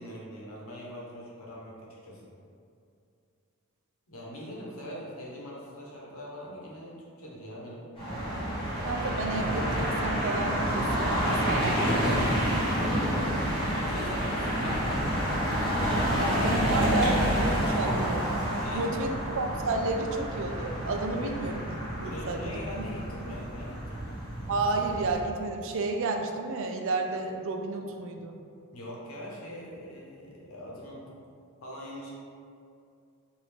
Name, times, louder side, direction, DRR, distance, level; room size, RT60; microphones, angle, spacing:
voice 1, 0.0-2.3 4.1-7.9 13.6-14.9 18.5-19.2 21.0-21.3 22.0-24.0 28.7-31.2 31.6-32.1, left 1 dB, 70° left, -4 dB, 0.9 m, -42 dB
sound 1, 8.0-25.1, equal, 25° left, 1.4 m, -29 dB
voice 2, 8.8-12.8 16.1-18.4 18.7-21.7 22.0-22.8 24.5-28.4, right 3 dB, 60° right, 4 dB, 0.4 m, -32 dB
5.0 x 2.6 x 3.3 m, 2.4 s
head